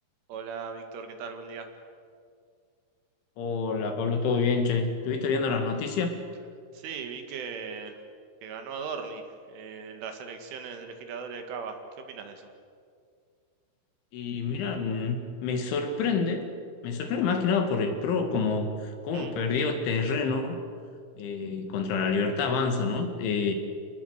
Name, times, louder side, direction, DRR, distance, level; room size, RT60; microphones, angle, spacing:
voice 1, 0.3-1.7 6.7-7.9 8.4-9.2 9.5-12.4 19.1-19.3, right 5 dB, 75° right, 5 dB, 4.4 m, -38 dB
voice 2, 3.4-6.1 14.1-16.5 16.8-20.6 21.2-23.5, left 4 dB, 70° left, 6 dB, 4.4 m, -27 dB
28.0 x 19.5 x 8.1 m, 2.2 s
omnidirectional pair, 5.8 m